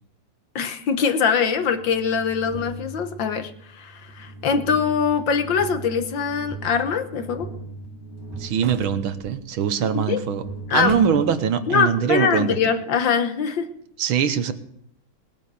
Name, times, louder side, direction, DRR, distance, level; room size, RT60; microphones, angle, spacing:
voice 1, 0.6-7.5 9.9-10.2 10.7-11.0 11.7-13.7, left 6 dB, 65° left, 8 dB, 1.8 m, -23 dB
sound 1, 1.2-11.8, right 2 dB, 10° right, 6.3 m, -40 dB
voice 2, 8.3-10.5 10.7-12.6 14.0-14.5, right 7 dB, 85° right, 11 dB, 1.8 m, -22 dB
sound 2, 8.6-9.3 10.8-11.4, right 4 dB, 45° right, 1.4 m, -39 dB
19.5 x 9.0 x 6.9 m, 0.71 s
omnidirectional pair, 2.2 m